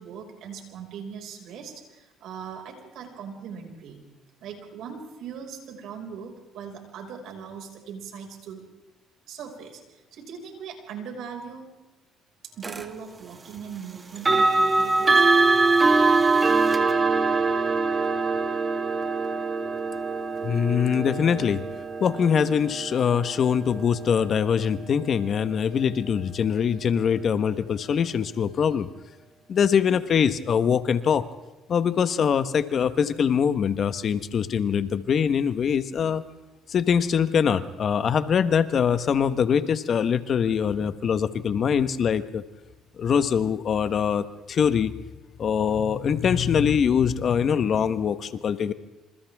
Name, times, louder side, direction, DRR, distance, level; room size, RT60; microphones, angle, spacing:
voice 1, 0.0-4.0 4.4-8.6 9.3-11.6 12.6-15.4, right 7 dB, 70° right, 2 dB, 5.8 m, -40 dB
sound 1, 12.6-12.9 14.2-25.0, right 3 dB, 25° right, 2.2 m, -23 dB
voice 2, 20.4-21.7 22.0-28.9 29.5-31.3 31.7-36.2 36.7-42.4 43.0-44.9 45.4-48.7, left 7 dB, 50° left, 11 dB, 1.3 m, -23 dB
27.0 x 27.0 x 3.7 m, 1.1 s
cardioid pair, 95°, 0 cm